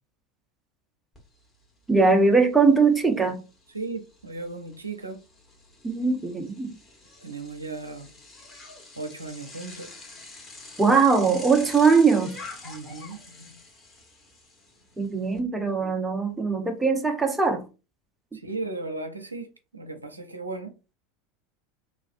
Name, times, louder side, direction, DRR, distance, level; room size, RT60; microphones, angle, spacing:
Bicycle, 1.1-1.2 1.6-15.4, left 3 dB, 25° left, 1.1 m, -46 dB
voice 1, 1.9-3.4 5.8-6.7 10.8-12.4 15.0-17.6, right 4 dB, 10° right, 0.5 m, -21 dB
voice 2, 3.7-5.2 7.2-8.1 9.0-9.9 12.6-13.6 15.6-16.0 18.3-20.7, right 3 dB, 85° right, 0.5 m, -36 dB
3.1 x 2.4 x 2.5 m
figure-of-eight pair, 80°, 0 cm